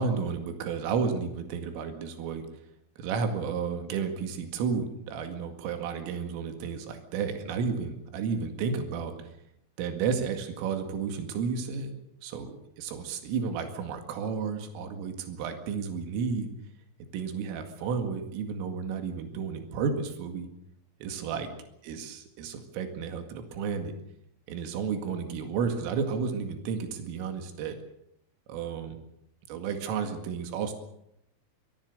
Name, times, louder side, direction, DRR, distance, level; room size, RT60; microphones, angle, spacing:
voice 1, 0.0-2.5 3.0-9.3 9.8-12.0 12.2-16.5 17.1-20.5 21.0-21.5 21.8-23.9 24.5-27.8 28.5-29.0 29.5-30.7, right 5 dB, 80° right, 6 dB, 4.7 m, -32 dB
23.5 x 19.5 x 6.7 m, 0.76 s
omnidirectional pair, 5.8 m